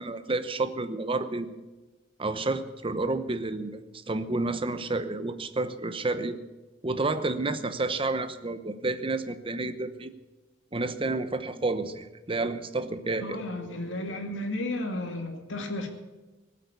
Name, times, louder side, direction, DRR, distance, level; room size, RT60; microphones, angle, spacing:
voice 1, 0.0-1.6 2.2-6.4 6.8-10.1 10.7-13.4, right 2 dB, 25° right, 10 dB, 0.9 m, -30 dB
voice 2, 13.2-15.9, left 1 dB, 70° left, 4 dB, 2.4 m, -33 dB
18.5 x 8.5 x 8.3 m, 1.2 s
head